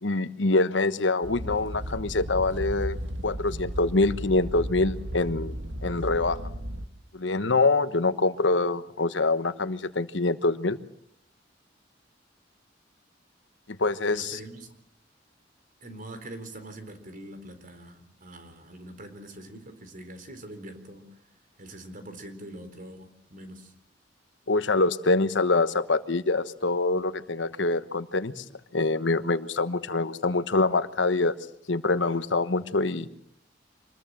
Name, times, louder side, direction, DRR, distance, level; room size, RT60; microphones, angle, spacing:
voice 1, 0.0-3.0 3.2-5.5 5.8-6.4 7.1-10.8 13.8-14.4 24.5-28.4 28.7-31.4 31.7-33.1, left 3 dB, 80° left, 12 dB, 1.2 m, -25 dB
sound 1, 1.2-6.9, equal, 90° right, 1.8 m, -35 dB
voice 2, 14.1-14.7 15.8-21.0 21.6-23.7, right 1 dB, 50° right, 8 dB, 4.0 m, -43 dB
26.0 x 21.0 x 7.6 m, 0.68 s
head